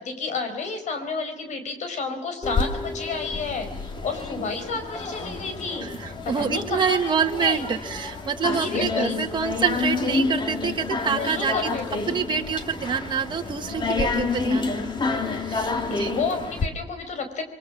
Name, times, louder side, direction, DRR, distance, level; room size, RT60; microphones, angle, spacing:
voice 1, 0.0-5.9 6.2-7.7 8.6-9.3 11.1-12.2 15.6-17.4, left 4 dB, 70° left, 7 dB, 4.7 m, -31 dB
sound 1, 2.4-16.7, left 4 dB, 35° left, 2.4 m, -29 dB
voice 2, 5.8-11.7 12.1-14.9 15.1-16.1, right 6 dB, 40° right, 3 dB, 1.6 m, -27 dB
29.0 x 22.5 x 6.2 m, 0.80 s
cardioid pair, 140°, 13 cm